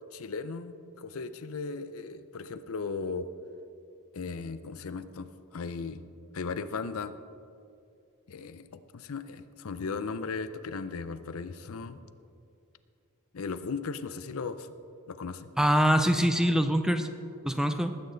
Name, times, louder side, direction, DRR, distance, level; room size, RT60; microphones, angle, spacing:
voice 1, 0.1-3.3 4.1-6.0 6.3-7.1 8.3-12.0 13.3-14.7 15.1-15.5, left 4 dB, 65° left, 12 dB, 0.6 m, -37 dB
voice 2, 15.6-17.1 17.4-17.9, equal, 5° right, 8 dB, 0.5 m, -24 dB
19.5 x 8.7 x 4.0 m, 2.5 s
head